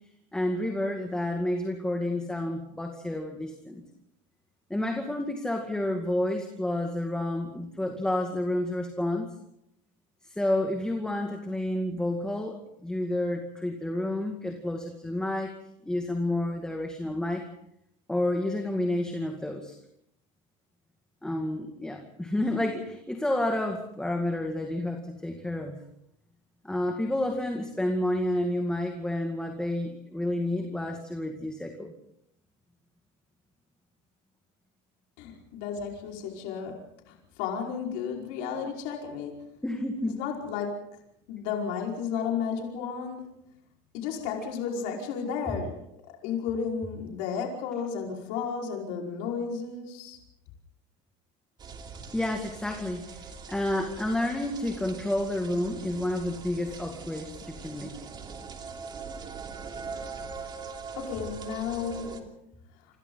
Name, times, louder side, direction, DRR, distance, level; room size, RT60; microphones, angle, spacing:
voice 1, 0.3-3.8 4.7-9.3 10.2-15.6 15.8-17.5 18.1-19.8 21.2-25.8 26.6-31.9 39.6-40.1 52.1-57.9, left 1 dB, 5° left, 3 dB, 2.2 m, -30 dB
voice 2, 35.2-39.5 40.0-40.8 41.3-43.4 43.9-50.2 61.0-62.3, left 6 dB, 70° left, 0 dB, 5.1 m, -33 dB
sound 1, 51.6-62.2, right 5 dB, 30° right, 3.1 m, -42 dB
28.0 x 27.0 x 4.0 m, 0.77 s
cardioid pair, 145°, 16 cm